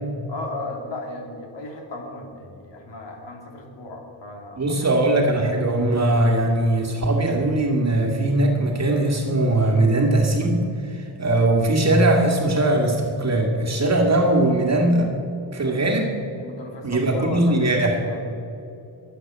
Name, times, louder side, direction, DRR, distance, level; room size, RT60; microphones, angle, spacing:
voice 1, 0.3-4.9 16.4-18.2, left 2 dB, 70° left, 2 dB, 3.3 m, -35 dB
voice 2, 4.6-10.6 10.8-15.1 15.5-16.1 16.8-18.0, right 1 dB, 35° right, 0 dB, 2.0 m, -20 dB
23.0 x 8.3 x 7.4 m, 2.8 s
wide cardioid pair, 140°, 44 cm